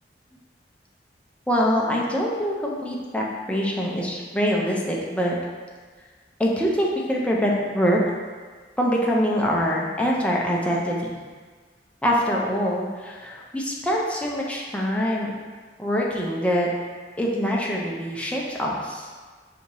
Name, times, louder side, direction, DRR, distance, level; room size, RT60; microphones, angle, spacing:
voice 1, 1.5-5.4 6.4-8.0 8.8-11.1 12.0-15.3 15.8-16.7 17.2-19.1, equal, 5° left, -3 dB, 0.5 m, -24 dB
5.1 x 2.7 x 3.0 m, 1.5 s
head